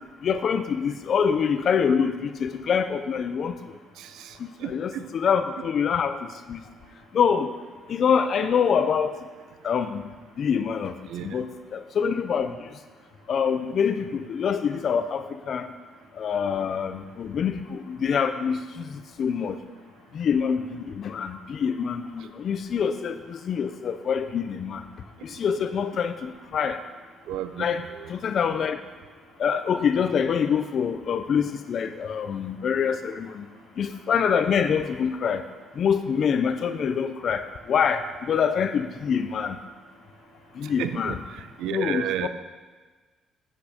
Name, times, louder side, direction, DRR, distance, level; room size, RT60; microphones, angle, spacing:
voice 1, 0.2-3.5 4.6-6.2 6.5-6.6 7.1-7.5 7.9-9.1 9.6-10.0 10.4-10.9 11.2-12.5 13.3-15.6 16.2-18.6 19.2-19.6 20.1-24.8 25.4-26.8 27.6-27.8 28.1-28.8 29.4-33.4 33.8-35.4 35.8-37.4 37.7-38.0 38.3-39.6 40.6-41.2 41.7-42.3, left 7 dB, 40° left, 9 dB, 0.5 m, -25 dB
voice 2, 4.6-5.1 11.1-11.3 27.3-27.7 40.8-41.1 41.6-42.3, right 10 dB, 85° right, 11 dB, 0.5 m, -30 dB
8.5 x 8.3 x 5.0 m, 1.3 s
cardioid pair, 175°, 0 cm